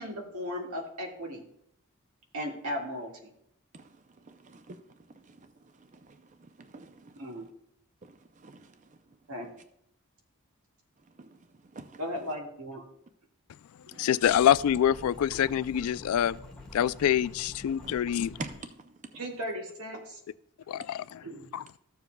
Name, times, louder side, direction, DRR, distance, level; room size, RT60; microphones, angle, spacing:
voice 1, 0.0-1.4 2.3-3.3 7.1-7.5 9.3-9.5 12.0-12.8 19.1-20.2 21.2-21.5, equal, 85° right, 1.8 m, -36 dB
voice 2, 4.2-4.8 5.3-5.5 5.8-7.2 8.0-8.8 11.2-11.4 11.7-12.0 13.9-14.1 17.8-18.0 18.4-19.3, right 3 dB, 35° right, 0.4 m, -46 dB
voice 3, 14.0-16.4 16.7-18.3 20.7-21.2 21.5-21.6, left 10 dB, 80° left, 0.3 m, -25 dB
sound 1, 14.2-18.6, left 2 dB, 5° left, 1.3 m, -47 dB
14.5 x 7.1 x 2.2 m
head